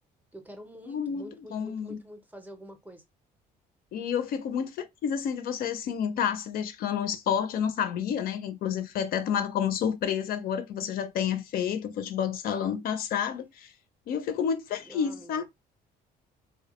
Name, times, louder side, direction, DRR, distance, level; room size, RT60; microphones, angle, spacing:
voice 1, 0.3-3.0 12.5-12.7 14.8-15.4, equal, 10° right, 0.5 m, -47 dB
voice 2, 0.9-2.0 3.9-13.7 14.1-15.4, left 8 dB, 60° left, 0.4 m, -30 dB
2.2 x 2.1 x 2.9 m
cardioid pair, 110°, 17 cm